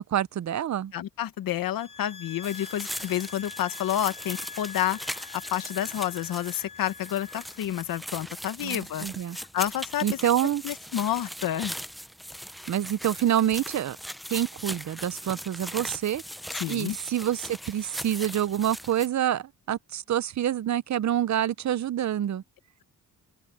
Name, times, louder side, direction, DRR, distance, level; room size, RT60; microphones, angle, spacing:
voice 1, 0.0-0.9 8.6-9.4 10.0-10.6 12.7-14.0 14.3-16.2 16.7-22.4, right 11 dB, 55° right, 0.7 m, -27 dB
voice 2, 0.9-5.0 5.5-9.1 9.4-10.0 10.6-11.7 16.6-17.0, left 12 dB, 85° left, 1.2 m, -29 dB
sound 1, 1.8-7.6, left 5 dB, 60° left, 1.7 m, -44 dB
sound 2, 2.4-19.1, equal, ahead, 0.5 m, -39 dB
open air
cardioid pair, 90°, 34 cm